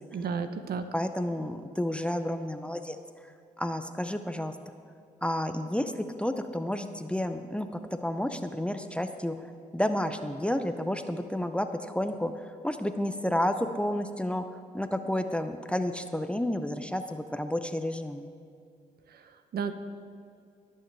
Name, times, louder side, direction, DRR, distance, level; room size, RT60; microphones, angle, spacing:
voice 1, 0.1-0.8 19.1-19.7, right 6 dB, 60° right, 10 dB, 0.7 m, -33 dB
voice 2, 0.9-3.0 3.6-4.6 5.2-14.4 14.7-18.3, left 1 dB, 5° left, 8 dB, 0.6 m, -31 dB
18.5 x 6.4 x 3.4 m, 2.3 s
supercardioid pair, 60°, 18 cm